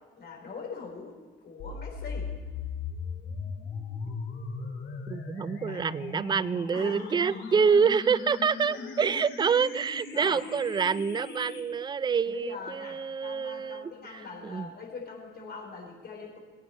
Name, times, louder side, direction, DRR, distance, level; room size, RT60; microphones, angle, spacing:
voice 1, 0.2-2.3 5.6-5.8 6.7-7.7 8.7-9.1 10.1-10.4 12.2-16.4, left 4 dB, 55° left, 0 dB, 3.6 m, -42 dB
sound 1, 1.6-11.6, left 4 dB, 75° left, 2.7 m, -38 dB
voice 2, 5.1-14.7, right 6 dB, 20° right, 17 dB, 0.3 m, -27 dB
21.5 x 8.8 x 4.2 m, 1.4 s
cardioid pair, 90°, 20 cm